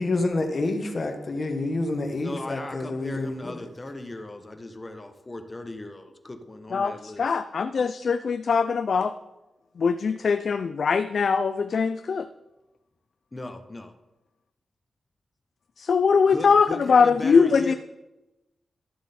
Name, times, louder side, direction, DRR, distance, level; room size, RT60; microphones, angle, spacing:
voice 1, 0.0-3.6, left 2 dB, 45° left, 1.2 m, -28 dB
voice 2, 2.2-7.4 13.3-13.9 16.3-17.8, left 2 dB, 25° left, 1.0 m, -37 dB
voice 3, 7.2-9.1 9.8-12.3 15.8-17.7, left 5 dB, 60° left, 0.4 m, -22 dB
12.0 x 7.2 x 4.3 m
wide cardioid pair, 110°, 0 cm